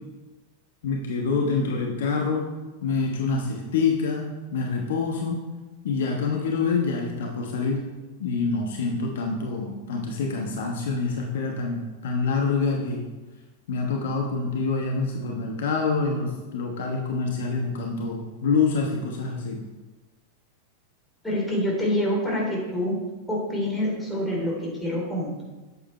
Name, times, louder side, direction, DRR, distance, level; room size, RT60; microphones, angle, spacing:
voice 1, 0.8-2.4 2.8-5.4 5.8-7.8 8.2-13.1 13.7-19.6, left 4 dB, 60° left, 0 dB, 1.2 m, -26 dB
voice 2, 21.2-22.9 23.3-25.4, left 1 dB, 5° left, -4 dB, 3.1 m, -26 dB
8.2 x 7.4 x 4.3 m, 1.2 s
figure-of-eight pair, 90°, 0 cm